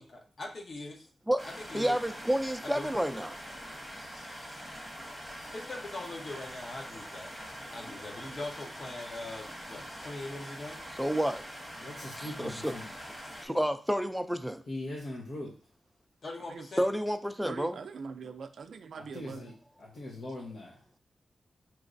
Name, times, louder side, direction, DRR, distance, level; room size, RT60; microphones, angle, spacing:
voice 1, 0.0-1.1 1.7-2.0 2.6-2.9 5.5-7.3 7.7-10.8 16.2-16.9, left 2 dB, 45° left, 0.9 m, -41 dB
sound 1, 1.4-13.5, equal, 20° left, 1.2 m, -44 dB
voice 2, 1.7-3.4 11.0-11.4 12.2-13.0 13.4-14.6 16.8-17.8, equal, 5° right, 0.4 m, -30 dB
voice 3, 11.8-12.9 14.7-15.5 19.0-19.5 19.8-20.8, left 1 dB, 80° left, 0.9 m, -40 dB
voice 4, 17.4-19.5, right 5 dB, 75° right, 0.4 m, -42 dB
5.8 x 3.1 x 2.6 m
wide cardioid pair, 125°, 0 cm